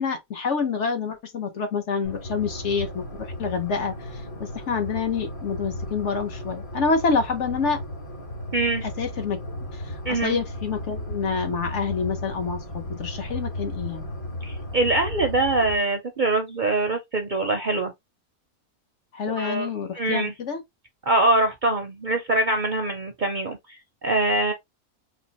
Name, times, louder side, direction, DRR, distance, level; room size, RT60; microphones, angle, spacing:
voice 1, 0.0-7.8 8.8-14.1 19.1-20.6, left 5 dB, 55° left, 1.1 m, -27 dB
sound 1, 2.0-15.8, left 1 dB, 40° left, 1.3 m, -35 dB
voice 2, 8.5-8.8 10.0-10.4 14.4-17.9 19.4-19.7 19.9-20.3 21.1-24.5, right 2 dB, 50° right, 0.6 m, -23 dB
4.3 x 3.1 x 2.9 m
omnidirectional pair, 1.5 m